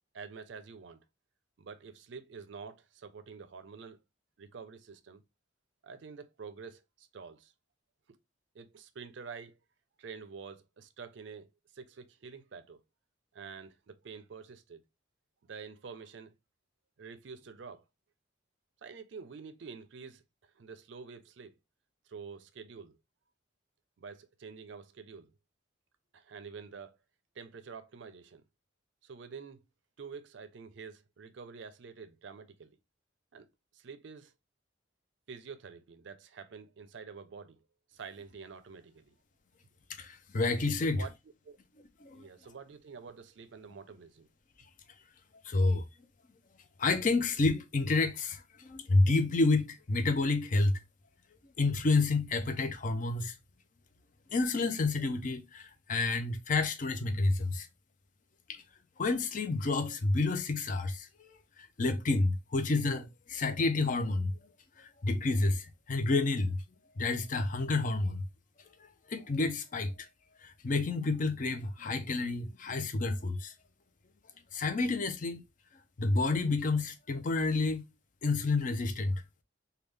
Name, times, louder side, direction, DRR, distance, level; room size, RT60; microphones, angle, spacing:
voice 1, 0.1-1.0 1.6-4.0 4.4-5.2 5.8-7.5 8.5-9.6 10.0-12.8 13.3-14.8 15.4-16.3 17.0-17.8 18.8-21.6 22.1-23.0 24.0-25.3 26.1-27.0 27.3-28.4 29.0-29.6 30.0-32.8 33.3-34.3 35.3-37.6 37.9-39.2 40.8-41.1 41.4-41.6 42.1-44.3, right 5 dB, 65° right, 0.4 m, -48 dB
voice 2, 40.0-41.0 42.0-42.2 45.4-45.8 46.8-50.8 51.6-53.4 54.3-57.7 58.5-58.6 59.0-64.3 64.8-66.6 67.0-68.2 68.8-70.1 70.4-73.5 74.5-75.4 76.0-77.8 78.2-79.2, left 3 dB, 40° left, 0.4 m, -29 dB
3.5 x 2.3 x 3.2 m
head